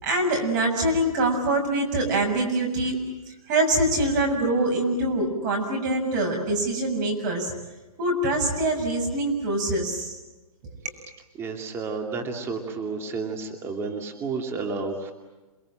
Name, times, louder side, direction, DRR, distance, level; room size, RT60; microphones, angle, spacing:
voice 1, 0.0-3.0 3.5-7.5 8.0-10.2, right 1 dB, 30° right, 3 dB, 7.0 m, -24 dB
voice 2, 11.4-15.1, right 4 dB, 15° right, 4 dB, 2.5 m, -31 dB
28.5 x 21.0 x 9.0 m, 1.1 s
hypercardioid pair, 155°, 19 cm